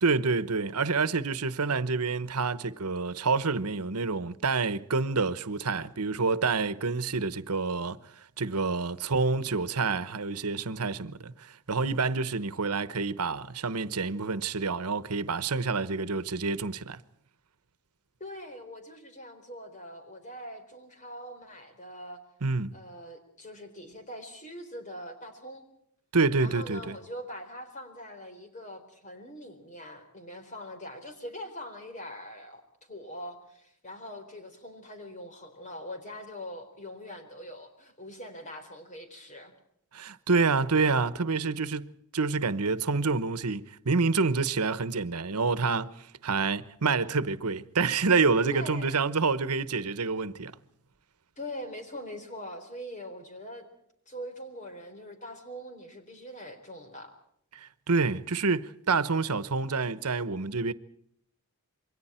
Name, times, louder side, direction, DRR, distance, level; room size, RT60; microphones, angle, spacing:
voice 1, 0.0-8.0 8.4-17.0 22.4-22.7 26.1-27.0 39.9-41.9 42.1-50.5 57.5-60.7, right 4 dB, 85° right, 1.1 m, -28 dB
voice 2, 18.2-22.2 22.7-25.6 26.4-39.5 48.4-49.0 51.4-53.7 54.1-57.1, left 1 dB, 35° left, 4.2 m, -42 dB
27.5 x 23.5 x 4.4 m
head